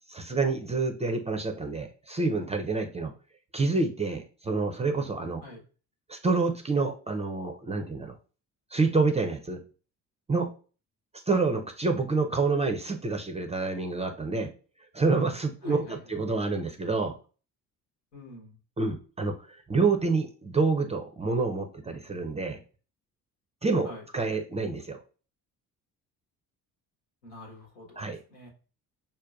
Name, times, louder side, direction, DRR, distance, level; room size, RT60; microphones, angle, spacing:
voice 1, 0.1-3.1 3.5-5.4 6.1-8.2 8.7-9.6 10.3-10.5 11.3-14.5 14.9-17.2 18.8-22.6 23.6-25.0 28.0-28.2, right 3 dB, 15° right, 5 dB, 0.4 m, -28 dB
voice 2, 15.6-16.0 18.1-18.6 23.8-24.0 27.2-28.5, left 1 dB, 80° left, 0 dB, 1.1 m, -45 dB
5.2 x 2.2 x 2.4 m, 0.37 s
figure-of-eight pair, 45°, 46 cm